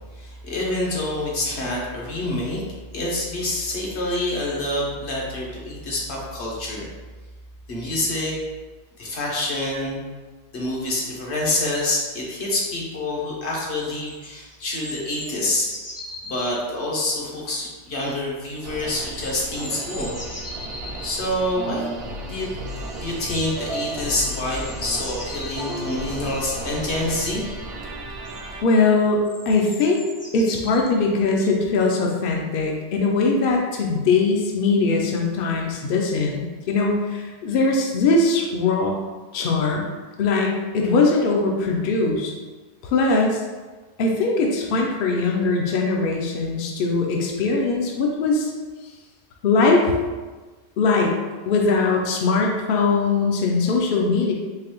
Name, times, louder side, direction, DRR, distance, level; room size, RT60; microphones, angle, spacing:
voice 1, 0.1-2.6 2.9-6.8 7.7-8.4 9.0-10.0 10.5-15.7 16.2-20.2 21.0-21.8 22.3-22.5 23.0-27.4, left 1 dB, 80° left, -3 dB, 1.2 m, -27 dB
sound 1, 13.8-16.5 18.8-21.2 23.2-23.7 24.1-26.2 27.8-27.9 28.2-28.4 29.2-30.9 31.4-31.5, left 1 dB, 20° left, 0.5 m, -39 dB
sound 2, 18.6-28.6, right 1 dB, 70° right, 0.8 m, -34 dB
voice 2, 28.6-30.0 30.3-39.0 39.3-39.9 40.2-42.3 42.8-43.4 44.0-48.5 49.4-49.9 50.8-51.1 51.5-54.3, left 3 dB, 65° left, 0 dB, 0.7 m, -21 dB
3.9 x 3.0 x 2.9 m, 1.3 s
omnidirectional pair, 1.1 m